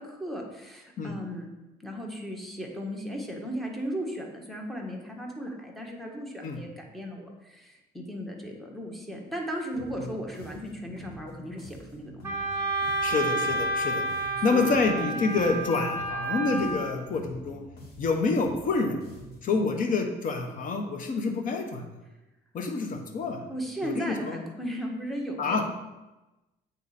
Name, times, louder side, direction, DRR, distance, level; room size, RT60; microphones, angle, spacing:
voice 1, 0.0-1.5 1.8-12.4 14.5-14.6 15.1-15.6 23.5-25.6, equal, ahead, -1 dB, 1.3 m, -36 dB
sound 1, 9.7-19.6, equal, 65° left, 2.0 m, -47 dB
Wind instrument woodwind instrument, 12.2-16.9, right 2 dB, 15° right, 1.4 m, -30 dB
voice 2, 13.0-14.0 14.4-17.6 18.0-19.0 19.4-21.9 22.5-23.4 23.8-24.4 25.4-25.6, left 4 dB, 50° left, 4 dB, 1.1 m, -27 dB
8.3 x 4.0 x 4.2 m, 1.0 s
cardioid pair, 110°, 17 cm